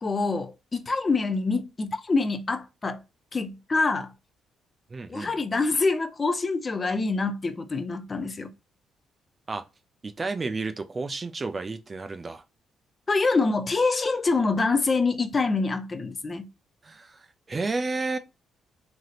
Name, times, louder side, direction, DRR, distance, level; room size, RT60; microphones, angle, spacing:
voice 1, 0.0-3.0 3.3-4.1 5.1-8.5 13.1-16.5, left 3 dB, 30° left, 0.5 m, -25 dB
voice 2, 4.9-5.3 9.5-9.6 10.0-12.4 16.8-18.2, right 3 dB, 30° right, 0.4 m, -31 dB
3.2 x 2.7 x 2.4 m
cardioid pair, 90°, 0 cm